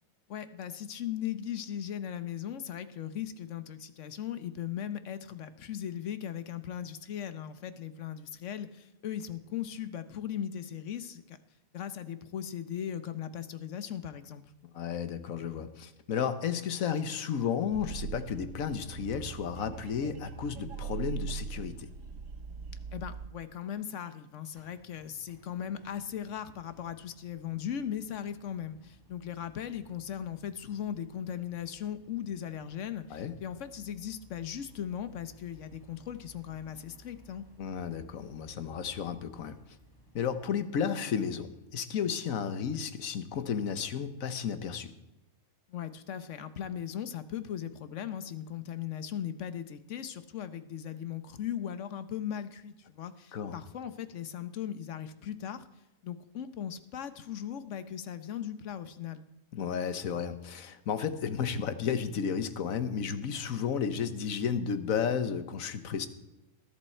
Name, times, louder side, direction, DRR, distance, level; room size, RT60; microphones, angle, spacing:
voice 1, 0.3-11.4 11.7-14.4 22.9-37.4 45.7-55.7 56.0-59.2, left 9 dB, 65° left, 12 dB, 1.1 m, -38 dB
voice 2, 14.7-21.9 33.1-33.3 37.6-39.6 40.1-44.9 53.3-53.5 59.5-66.1, left 7 dB, 80° left, 11 dB, 1.4 m, -33 dB
sound 1, 17.7-23.3, right 7 dB, 70° right, 1.2 m, -41 dB
sound 2, 24.5-40.5, right 1 dB, 15° left, 3.4 m, -59 dB
20.0 x 11.0 x 4.4 m, 0.96 s
omnidirectional pair, 1.4 m